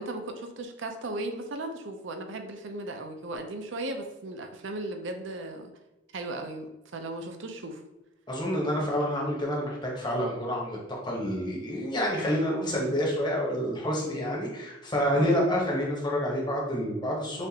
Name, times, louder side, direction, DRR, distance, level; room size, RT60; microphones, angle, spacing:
voice 1, 0.0-5.7 6.1-7.8 15.1-15.5, right 2 dB, 65° right, 5 dB, 0.5 m, -36 dB
voice 2, 8.3-10.8 11.0-17.5, equal, 20° left, -3 dB, 1.1 m, -28 dB
6.3 x 2.5 x 2.8 m, 1.0 s
head